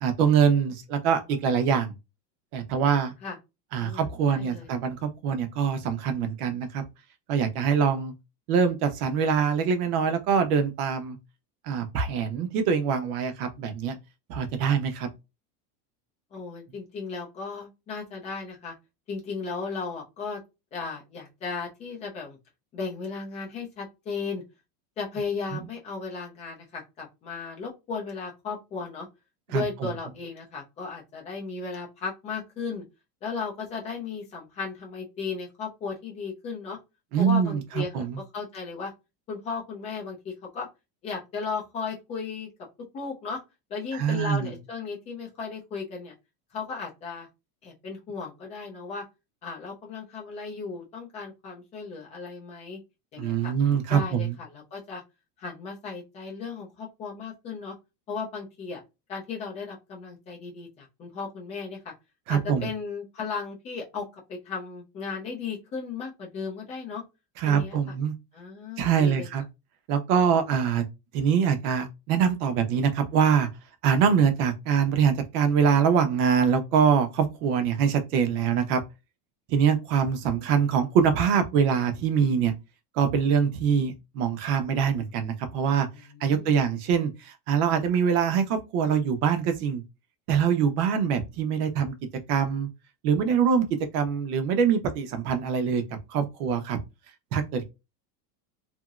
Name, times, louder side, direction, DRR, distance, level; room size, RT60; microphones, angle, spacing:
voice 1, 0.0-1.9 2.5-3.1 3.7-6.8 7.3-8.1 8.5-11.2 11.6-14.0 14.3-15.1 25.5-25.6 29.5-29.6 37.1-37.6 37.9-38.2 43.9-44.5 53.2-54.4 62.3-62.7 67.4-68.1 68.8-69.4 69.9-70.8 71.1-73.5 73.8-78.8 79.5-82.5 82.9-85.9 86.2-89.8 90.3-91.9 92.3-92.7 93.0-93.7 93.9-95.8 96.1-96.8 97.3-97.6, right 7 dB, 70° right, 0.8 m, -24 dB
voice 2, 3.8-4.7 16.3-18.7 19.1-20.4 20.7-22.4 22.7-24.4 25.0-29.1 29.5-32.8 33.2-36.8 37.2-38.9 39.3-40.7 41.0-42.5 42.9-43.4 43.7-46.1 46.5-47.3 47.6-49.0 49.4-52.8 53.1-53.5 53.9-55.0 55.4-57.7 58.1-58.8 59.1-61.9 62.3-67.0 67.4-67.9 68.3-69.3 85.9-86.5, left 4 dB, 15° left, 0.3 m, -35 dB
2.9 x 2.7 x 2.4 m
supercardioid pair, 160°, 47 cm